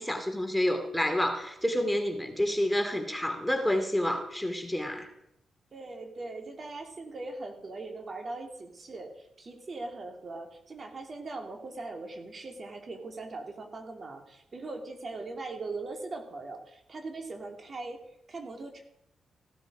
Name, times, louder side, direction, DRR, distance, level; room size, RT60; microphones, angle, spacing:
voice 1, 0.0-5.1, left 1 dB, 5° left, 5 dB, 2.9 m, -29 dB
voice 2, 5.7-18.8, right 3 dB, 50° right, 3 dB, 3.0 m, -40 dB
16.0 x 12.0 x 5.1 m, 0.82 s
supercardioid pair, 45°, 0 cm